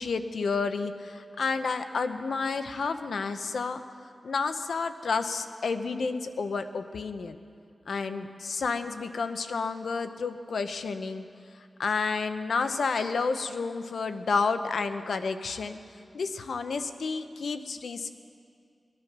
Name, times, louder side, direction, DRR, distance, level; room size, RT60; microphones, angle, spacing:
voice 1, 0.0-3.8 4.2-7.4 7.9-11.3 11.8-15.8 16.1-18.1, left 4 dB, 90° left, 9 dB, 0.7 m, -30 dB
21.0 x 11.0 x 6.0 m, 2.3 s
wide cardioid pair, 75°, 0 cm